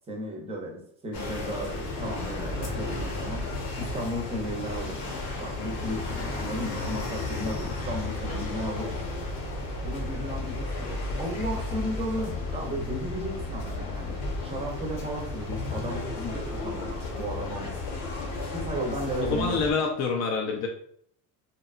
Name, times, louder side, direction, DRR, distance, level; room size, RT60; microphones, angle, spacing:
voice 1, 0.1-3.4 3.8-5.0 5.4-9.0 9.8-17.8 18.5-19.7, equal, 15° right, 0 dB, 0.5 m, -34 dB
sound 1, 1.1-19.7, left 2 dB, 80° left, 0.9 m, -33 dB
voice 2, 19.2-20.7, left 4 dB, 45° left, 1 dB, 0.4 m, -27 dB
2.8 x 2.2 x 2.4 m, 0.67 s
cardioid pair, 150°, 37 cm